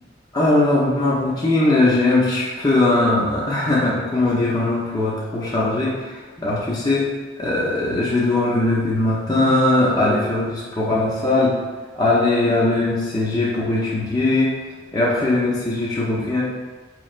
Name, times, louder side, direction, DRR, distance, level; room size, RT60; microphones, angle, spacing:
voice 1, 0.3-7.0 7.4-11.5 11.9-14.5 14.9-16.4, left 2 dB, 20° left, -6 dB, 0.5 m, -20 dB
4.0 x 3.2 x 2.4 m, 1.4 s
head